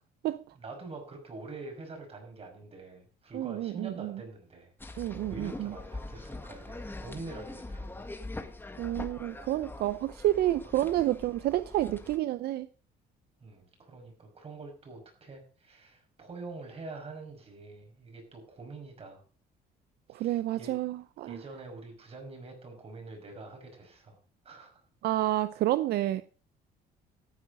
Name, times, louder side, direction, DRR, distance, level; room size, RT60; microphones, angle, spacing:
voice 1, 0.5-8.1 13.4-19.2 20.1-20.9 21.3-24.2 24.4-24.8, right 3 dB, 35° right, 5.8 m, -45 dB
voice 2, 3.3-4.1 5.0-5.7 8.8-12.7 20.1-21.4 25.0-26.2, right 14 dB, 70° right, 0.6 m, -29 dB
sound 1, 4.8-12.2, left 2 dB, 10° left, 1.6 m, -43 dB
14.0 x 8.8 x 5.3 m
cardioid pair, 110°, 17 cm